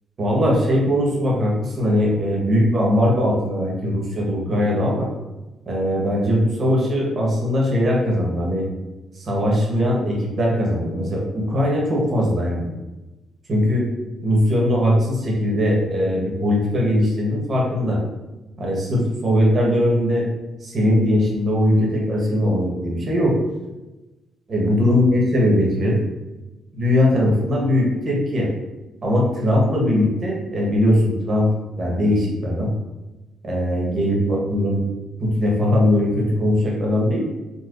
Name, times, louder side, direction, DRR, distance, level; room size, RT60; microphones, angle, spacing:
voice 1, 0.2-5.1 5.7-8.7 9.1-12.7 13.5-13.9 14.2-18.0 18.6-20.3 20.6-23.4 24.5-26.0 26.7-28.5 29.0-31.5 31.8-32.7 33.4-34.8 35.2-37.2, left 1 dB, 45° right, -2 dB, 1.0 m, -20 dB
4.0 x 2.2 x 2.4 m, 1.1 s
cardioid pair, 90°, 0 cm